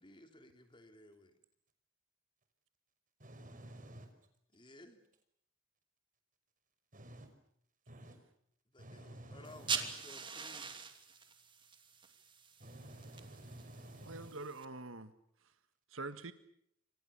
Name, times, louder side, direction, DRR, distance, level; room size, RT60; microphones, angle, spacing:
voice 1, 0.0-1.4 4.5-5.0 8.7-10.7, left 1 dB, 25° left, 3.0 m, -57 dB
voice 2, 3.2-4.1 6.9-7.3 7.9-8.2 8.8-9.9 12.6-14.4, right 1 dB, 45° right, 5.7 m, -52 dB
sound 1, 9.4-14.6, right 5 dB, 25° right, 2.9 m, -43 dB
voice 3, 14.0-15.1 15.9-16.3, right 3 dB, 90° right, 1.6 m, -45 dB
29.5 x 26.0 x 7.0 m
head